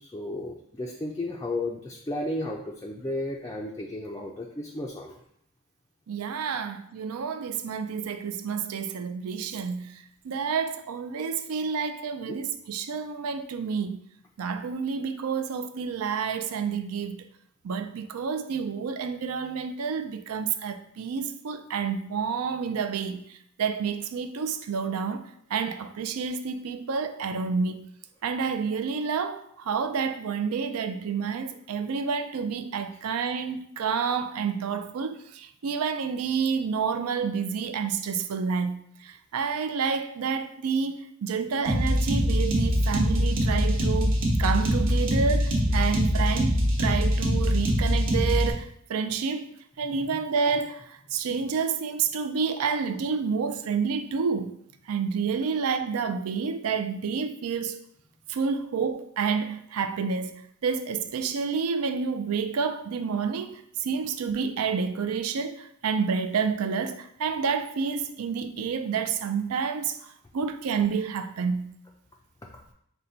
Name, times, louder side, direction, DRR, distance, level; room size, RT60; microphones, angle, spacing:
voice 1, 0.1-5.1, left 1 dB, 15° left, 0.3 m, -33 dB
voice 2, 6.1-9.9 10.2-14.0 14.4-17.3 17.6-23.2 23.6-27.8 28.2-54.5 54.9-57.8 58.3-70.0 70.3-71.7, right 5 dB, 90° right, 0.4 m, -29 dB
sound 1, 41.7-48.5, equal, 60° right, 1.0 m, -23 dB
5.4 x 2.2 x 3.8 m
head